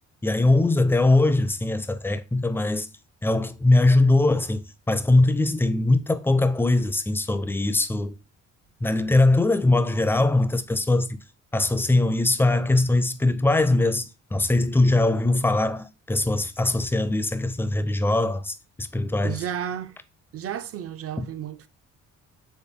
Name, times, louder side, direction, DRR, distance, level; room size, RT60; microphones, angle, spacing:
voice 1, 0.2-2.9 3.2-8.1 8.8-11.2 11.5-19.4 21.2-21.3, left 2 dB, 5° left, 0.4 m, -21 dB
voice 2, 19.2-20.0 20.3-21.7, right 9 dB, 50° right, 0.5 m, -32 dB
4.2 x 3.3 x 3.5 m
cardioid pair, 90°, 30 cm